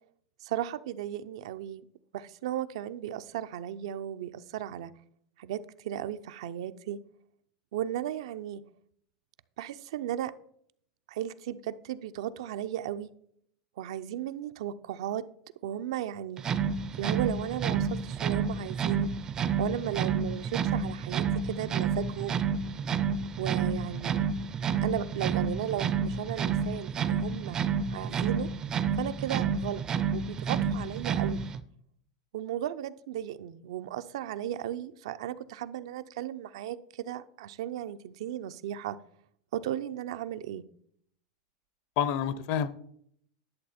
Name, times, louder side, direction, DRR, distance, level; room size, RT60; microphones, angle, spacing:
voice 1, 0.4-1.8 2.1-4.9 5.4-7.0 7.7-8.6 9.6-10.3 11.1-13.1 13.8-15.3 15.6-16.5 17.0-19.1 19.6-22.4 23.4-24.3 24.8-27.6 27.9-28.5 28.9-29.8 30.1-31.4 32.3-39.0 39.5-40.7, right 11 dB, 75° right, 12 dB, 0.5 m, -35 dB
sound 1, 16.4-31.6, right 6 dB, 20° right, 0.4 m, -30 dB
voice 2, 22.8-23.2 42.0-42.7, left 8 dB, 50° left, 16 dB, 0.7 m, -30 dB
11.0 x 7.3 x 4.2 m, 0.68 s
supercardioid pair, 155°, 3 cm